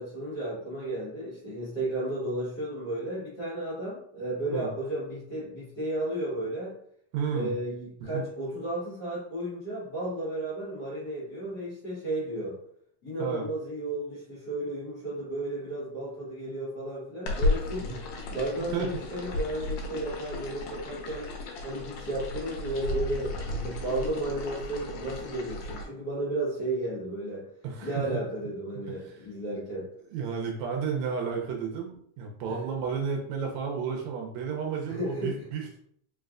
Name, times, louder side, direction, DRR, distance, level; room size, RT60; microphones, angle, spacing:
voice 1, 0.0-6.8 7.3-12.6 13.0-17.9 18.3-21.3 21.6-27.5 27.8-29.9 32.5-32.6 34.9-35.4, right 1 dB, 45° left, -10 dB, 1.3 m, -33 dB
voice 2, 7.1-7.5 8.1-8.2 13.2-13.4 17.9-18.0 18.7-19.0 27.6-28.2 29.0-29.2 30.1-35.8, right 6 dB, 80° right, 1 dB, 1.8 m, -32 dB
sound 1, 17.3-25.8, left 2 dB, 75° left, 1.8 m, -34 dB
4.6 x 3.2 x 2.4 m, 0.66 s
omnidirectional pair, 3.5 m